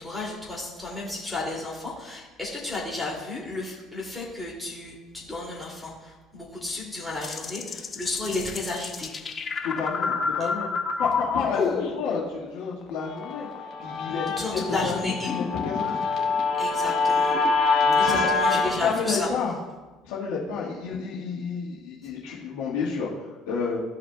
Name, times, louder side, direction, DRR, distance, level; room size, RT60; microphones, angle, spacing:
voice 1, 0.0-9.1 14.4-15.3 16.6-17.4 18.0-19.3, left 2 dB, 5° left, -6 dB, 2.4 m, -32 dB
sound 1, 7.2-12.4 12.6-13.9 14.5-17.5, left 5 dB, 40° left, 0.9 m, -30 dB
voice 2, 9.6-10.7 11.0-13.5 13.8-15.0 15.3-16.4 17.8-18.3 18.5-19.6 20.0-23.8, left 5 dB, 80° left, -7 dB, 1.5 m, -31 dB
Guitar, 13.2-18.7, left 3 dB, 55° left, 1.9 m, -25 dB
14.0 x 5.0 x 2.2 m, 1.2 s
hypercardioid pair, 70°, 0 cm